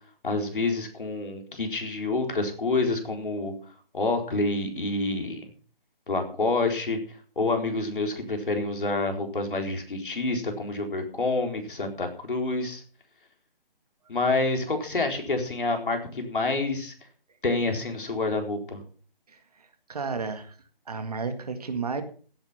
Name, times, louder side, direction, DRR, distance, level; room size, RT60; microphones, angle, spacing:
voice 1, 0.2-3.5 3.9-5.5 6.1-7.0 7.4-12.8 14.1-16.9 17.4-18.8, left 3 dB, 60° left, 4 dB, 4.2 m, -28 dB
voice 2, 19.9-20.5 20.9-22.0, right 4 dB, 40° right, 8 dB, 2.0 m, -32 dB
16.0 x 9.1 x 5.8 m, 0.42 s
figure-of-eight pair, 170°, 29 cm